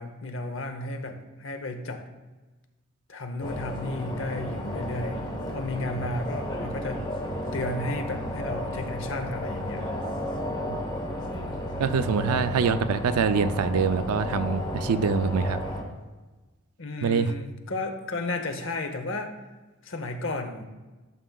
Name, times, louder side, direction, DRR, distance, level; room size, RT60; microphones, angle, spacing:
voice 1, 0.0-2.0 3.1-5.2 5.5-7.0 7.5-9.8 16.8-19.4 19.8-20.6, left 2 dB, 60° left, 7 dB, 0.8 m, -33 dB
sound 1, 3.4-15.8, left 1 dB, 20° left, 0.9 m, -33 dB
voice 2, 11.8-15.6 17.0-17.3, right 6 dB, 90° right, 12 dB, 0.4 m, -25 dB
11.0 x 5.9 x 2.3 m, 1.2 s
head